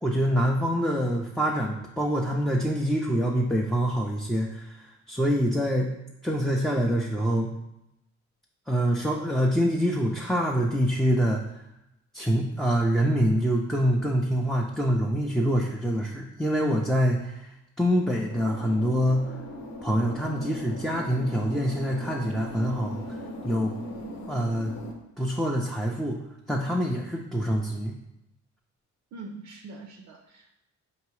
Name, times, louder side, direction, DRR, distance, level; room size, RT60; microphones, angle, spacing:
voice 1, 0.0-5.9 6.2-7.5 8.7-11.4 12.1-17.5 17.8-19.3 19.8-23.2 23.4-23.7 24.3-24.7 25.2-26.2 26.5-27.9, equal, ahead, -2 dB, 0.4 m, -25 dB
sound 1, 18.3-24.9, left 1 dB, 75° left, 0.8 m, -38 dB
voice 2, 29.1-30.5, right 3 dB, 65° right, 3 dB, 0.5 m, -43 dB
4.6 x 2.9 x 3.1 m, 0.86 s
cardioid pair, 90°, 30 cm